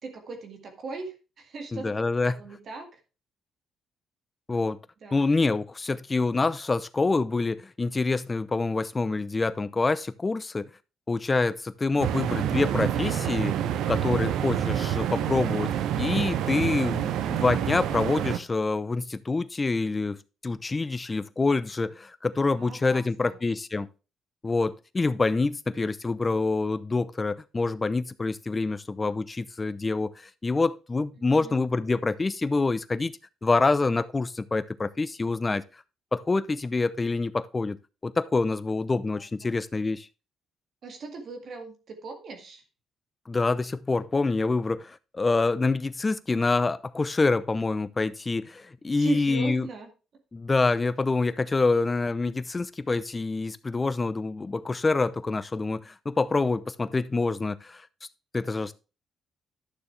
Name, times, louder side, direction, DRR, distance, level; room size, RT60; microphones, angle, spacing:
voice 1, 0.0-1.9 2.3-2.9 5.0-5.3 11.9-12.3 22.5-23.4 31.2-31.6 39.4-39.5 40.8-42.6 48.9-49.9, right 3 dB, 55° right, 2.0 m, -38 dB
voice 2, 1.7-2.4 4.5-4.8 5.1-10.7 11.1-13.6 13.9-23.9 24.4-33.1 33.4-35.6 36.1-37.8 38.0-40.1 43.3-49.7 50.3-57.9 58.3-58.7, left 3 dB, 25° left, 0.7 m, -26 dB
sound 1, 12.0-18.4, right 10 dB, 85° right, 0.8 m, -27 dB
11.5 x 6.8 x 3.4 m
cardioid pair, 90°, 0 cm